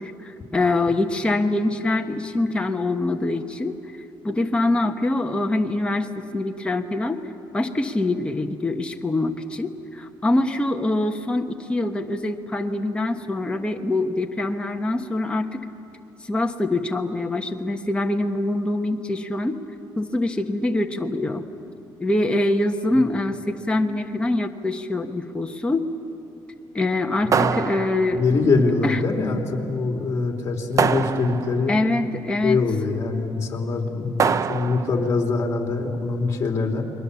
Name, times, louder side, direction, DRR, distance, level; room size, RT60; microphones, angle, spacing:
voice 1, 0.0-3.8 4.2-7.2 7.5-15.6 16.2-19.6 20.0-21.5 22.0-25.9 26.7-28.2 28.8-29.0 31.7-32.6, left 2 dB, 10° left, 3 dB, 1.2 m, -24 dB
voice 2, 27.2-27.6 28.1-31.7 32.4-36.8, left 3 dB, 35° left, 1 dB, 3.3 m, -23 dB
sound 1, 27.3-28.4 30.8-31.7 34.2-35.1, right 6 dB, 40° right, 0.6 m, -24 dB
29.5 x 22.0 x 7.1 m, 2.8 s
cardioid pair, 120°, 8 cm